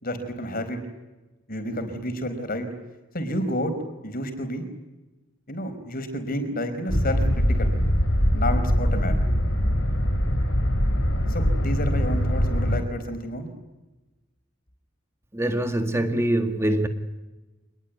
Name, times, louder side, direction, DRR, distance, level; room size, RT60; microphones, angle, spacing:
voice 1, 0.0-0.8 1.5-2.7 3.1-3.7 4.0-4.6 5.5-7.8 8.3-9.1 11.3-13.5, equal, 50° left, 8 dB, 4.8 m, -30 dB
sound 1, 6.9-12.8, equal, 90° left, 6.5 m, -22 dB
voice 2, 15.3-16.9, right 1 dB, 15° right, 6 dB, 1.8 m, -24 dB
26.5 x 21.0 x 9.4 m, 1.1 s
head